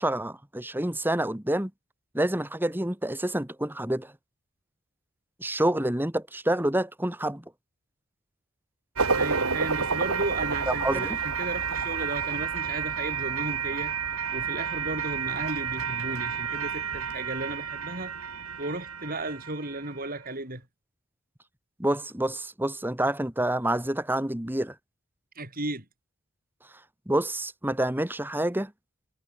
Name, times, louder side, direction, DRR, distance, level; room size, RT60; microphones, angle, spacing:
voice 1, 0.0-1.7 2.1-4.1 5.4-7.4 10.7-11.2 21.8-24.7 27.1-28.7, right 1 dB, 10° right, 1.6 m, -28 dB
sound 1, 9.0-20.1, right 6 dB, 85° right, 3.0 m, -30 dB
voice 2, 9.1-14.0 14.3-18.2 18.6-20.6 25.4-25.8, right 2 dB, 40° right, 6.2 m, -34 dB
head